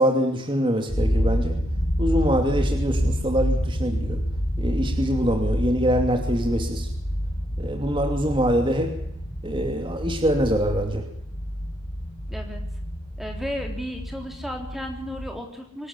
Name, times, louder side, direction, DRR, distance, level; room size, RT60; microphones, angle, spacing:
voice 1, 0.0-1.6 2.0-4.2 4.6-6.9 7.6-8.9 9.4-11.0, equal, 25° right, 3 dB, 2.7 m, -24 dB
sound 1, 0.9-15.4, equal, 35° left, 3.4 m, -28 dB
voice 2, 12.3-12.6 13.2-15.9, equal, ahead, 2 dB, 3.6 m, -34 dB
25.0 x 13.5 x 9.8 m, 0.72 s
head